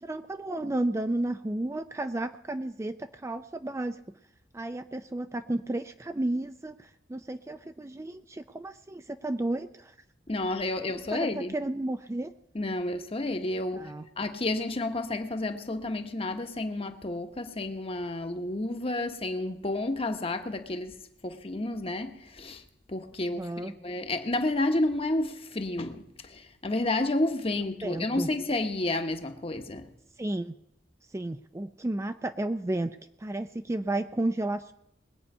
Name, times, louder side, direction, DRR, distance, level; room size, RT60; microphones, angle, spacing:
voice 1, 0.0-4.0 4.5-9.9 10.9-12.3 13.8-14.0 23.3-23.7 27.8-28.3 30.2-30.5 31.1-34.7, right 1 dB, 15° right, 0.4 m, -32 dB
voice 2, 10.3-11.5 12.5-21.0 21.2-22.6 22.9-29.9, left 2 dB, 35° left, 1.1 m, -31 dB
21.5 x 8.4 x 5.5 m
head